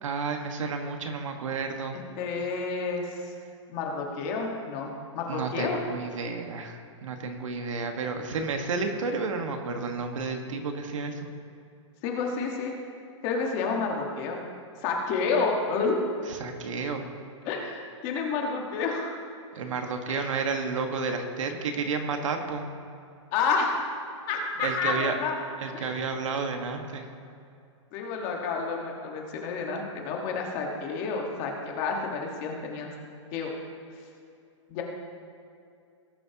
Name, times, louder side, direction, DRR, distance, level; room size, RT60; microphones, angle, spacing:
voice 1, 0.0-2.0 5.3-11.3 16.3-17.0 19.5-22.7 24.6-25.2 25.6-27.0, right 4 dB, 80° right, 4 dB, 1.6 m, -31 dB
voice 2, 1.9-3.3 3.7-5.8 12.0-12.7 13.2-14.4 14.8-16.0 17.4-19.2 20.1-20.2 23.3-23.8 24.3-25.3 25.7-25.9 27.9-32.9 33.3-33.5 34.7-34.8, left 4 dB, 30° left, 0 dB, 1.6 m, -30 dB
18.5 x 8.5 x 2.9 m, 2.5 s
hypercardioid pair, 165°, 16 cm